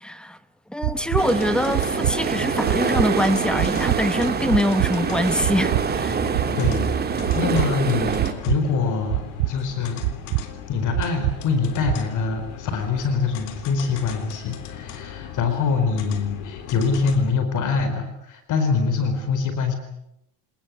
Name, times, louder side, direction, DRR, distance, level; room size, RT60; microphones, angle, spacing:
voice 1, 0.0-0.4 0.7-6.2, left 1 dB, ahead, 12 dB, 1.1 m, -24 dB
sound 1, 0.8-1.2 1.7-2.2 2.7-3.1 3.6-4.0 4.5-4.9 5.4-5.8 6.3-6.8 7.3-7.7 8.2-8.6 9.1-9.5 10.0-10.4 10.9-11.4 11.9-12.0, right 21 dB, 65° right, 1.0 m, -23 dB
sound 2, 0.9-17.3, left 9 dB, 70° left, 3.7 m, -39 dB
sound 3, 1.2-8.3, right 6 dB, 20° right, 2.2 m, -25 dB
voice 2, 6.6-6.9 7.3-9.2 9.5-10.0 10.7-19.7, left 5 dB, 45° left, 8 dB, 4.5 m, -24 dB
27.0 x 19.5 x 9.8 m, 0.82 s
cardioid pair, 160°, 43 cm